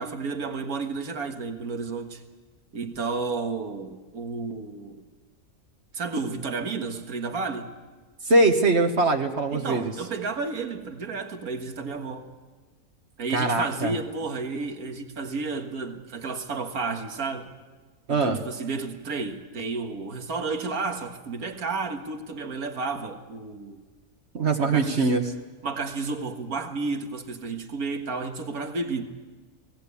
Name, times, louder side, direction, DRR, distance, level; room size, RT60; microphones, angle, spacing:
voice 1, 0.0-2.2 2.7-5.0 5.9-7.7 9.5-12.3 13.2-17.5 18.1-23.8 24.6-25.1 25.6-29.0, right 4 dB, 75° right, 2.1 m, -32 dB
voice 2, 8.2-9.9 13.3-13.9 18.1-18.4 24.3-25.2, right 2 dB, 50° right, 1.6 m, -22 dB
24.5 x 18.0 x 8.5 m
omnidirectional pair, 1.6 m